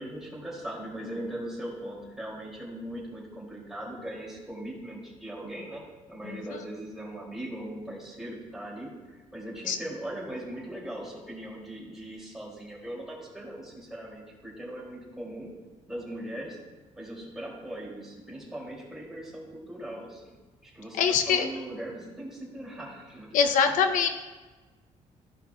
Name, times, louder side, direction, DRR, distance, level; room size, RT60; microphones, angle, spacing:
voice 1, 0.0-15.5 15.9-16.6 17.0-20.4 20.6-23.3, right 1 dB, 5° right, -4 dB, 2.6 m, -39 dB
voice 2, 6.2-6.6 9.7-9.8 21.0-21.5 23.3-24.1, left 6 dB, 80° left, 7 dB, 0.6 m, -24 dB
14.0 x 5.7 x 2.3 m, 1.3 s
cardioid pair, 125°, 13 cm